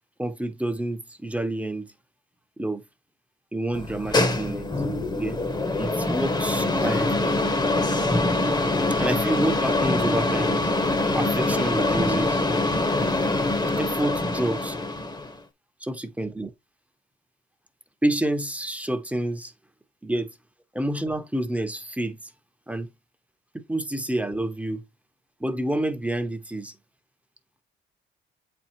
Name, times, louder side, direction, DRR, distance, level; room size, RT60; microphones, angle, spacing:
voice 1, 0.2-1.9 2.6-2.8 3.5-4.7 5.1-5.4 5.8-7.3 9.0-10.7 11.1-12.4 13.8-14.8 15.8-16.5 18.0-19.5 20.0-20.3 20.7-22.2 22.7-22.9 23.7-24.8 25.4-26.7, right 1 dB, 5° right, 1.0 m, -28 dB
sound 1, 3.7-15.4, left 2 dB, 20° left, 1.1 m, -24 dB
8.1 x 4.5 x 2.8 m
cardioid pair, 90°, 20 cm